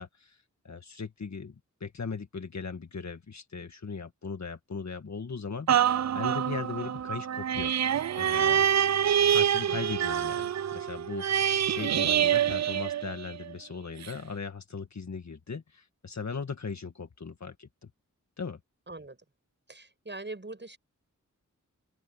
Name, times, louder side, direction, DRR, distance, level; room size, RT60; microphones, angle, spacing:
voice 1, 0.0-7.7 8.2-9.0 9.3-17.9 18.4-18.6, left 5 dB, 60° left, 1.8 m, -38 dB
sound 1, 5.7-13.5 14.0-14.1, right 9 dB, 60° right, 0.4 m, -26 dB
voice 2, 18.9-19.2 19.7-20.8, right 2 dB, 35° right, 7.4 m, -42 dB
open air
cardioid pair, 50°, 31 cm